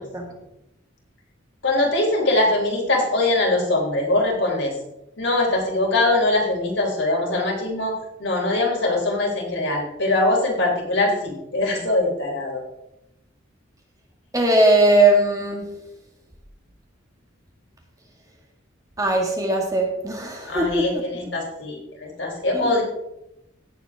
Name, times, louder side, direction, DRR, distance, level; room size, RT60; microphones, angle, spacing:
voice 1, 1.6-4.7 5.2-7.9 8.2-12.6 20.4-22.8, left 2 dB, 60° left, -1 dB, 3.6 m, -22 dB
voice 2, 14.3-15.6 19.0-20.9 22.5-22.8, right 2 dB, 15° right, 1 dB, 1.8 m, -19 dB
16.5 x 7.4 x 3.5 m, 0.86 s
head